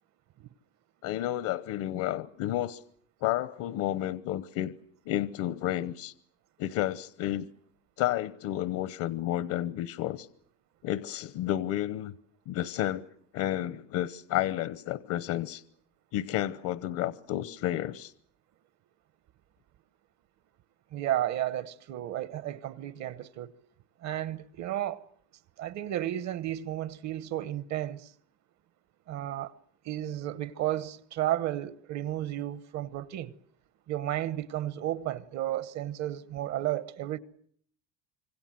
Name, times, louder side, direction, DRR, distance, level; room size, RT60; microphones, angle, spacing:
voice 1, 1.0-2.8 3.2-4.7 5.1-6.1 6.6-7.5 8.0-10.3 10.8-12.1 12.5-13.0 13.3-15.6 16.1-18.1, left 13 dB, 60° left, 1.0 m, -31 dB
voice 2, 20.9-23.5 24.0-25.0 25.6-28.1 29.1-29.6 29.8-33.3 33.9-37.2, right 13 dB, 50° right, 1.0 m, -33 dB
26.5 x 24.0 x 7.6 m
cardioid pair, 150°, 37 cm